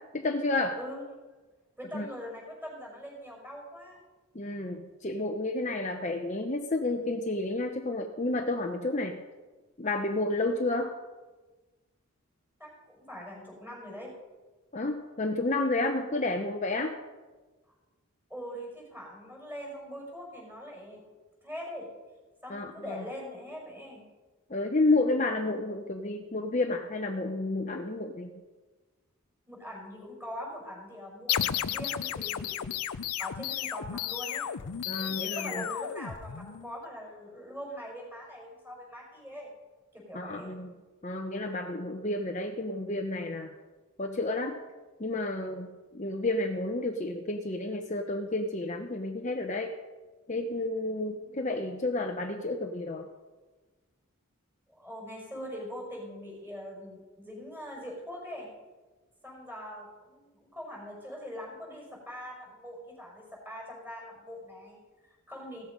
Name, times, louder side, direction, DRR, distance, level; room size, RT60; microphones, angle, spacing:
voice 1, 0.1-0.8 1.9-2.1 4.3-9.2 9.8-10.9 14.7-17.0 22.5-23.0 24.5-28.3 34.9-35.6 40.1-40.7 41.0-43.5 44.0-44.6 45.0-49.7 50.3-53.1, left 2 dB, 35° left, 3 dB, 0.9 m, -31 dB
voice 2, 1.8-4.0 12.6-14.1 18.3-21.0 21.4-21.9 22.4-24.1 29.5-32.7 33.2-34.5 35.0-39.5 39.9-40.5 51.2-51.3 54.7-58.5 59.2-65.7, equal, 10° right, -2 dB, 5.5 m, -42 dB
sound 1, 31.3-36.7, left 10 dB, 90° left, 0.6 m, -33 dB
17.0 x 13.5 x 5.3 m, 1.3 s
head